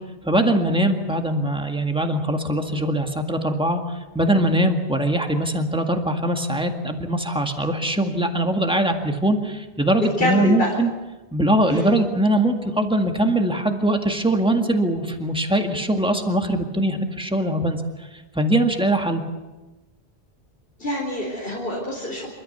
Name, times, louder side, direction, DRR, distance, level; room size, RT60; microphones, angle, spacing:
voice 1, 0.2-10.9 11.3-19.2, right 1 dB, 5° right, 4 dB, 1.9 m, -22 dB
voice 2, 10.0-10.7 11.7-12.0 20.8-22.3, left 1 dB, 60° left, -3 dB, 4.5 m, -25 dB
27.5 x 13.0 x 8.1 m, 1.1 s
omnidirectional pair, 1.1 m